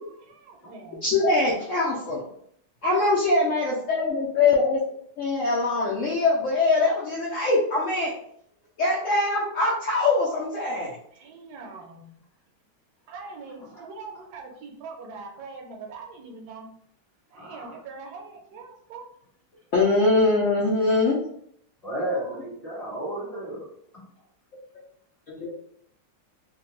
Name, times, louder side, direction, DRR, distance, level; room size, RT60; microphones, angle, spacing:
voice 1, 0.3-1.0 11.2-12.1 13.1-16.7 17.3-19.0, right 4 dB, 75° right, 1 dB, 1.1 m, -42 dB
voice 2, 1.0-2.3 2.8-4.8 5.2-8.1 8.8-10.9 19.7-21.2 25.3-25.5, left 3 dB, 70° left, -5 dB, 0.7 m, -23 dB
voice 3, 17.4-17.7 21.8-23.7 23.9-24.0, right 1 dB, 25° left, -10 dB, 1.1 m, -33 dB
2.8 x 2.1 x 3.0 m, 0.68 s
omnidirectional pair, 1.9 m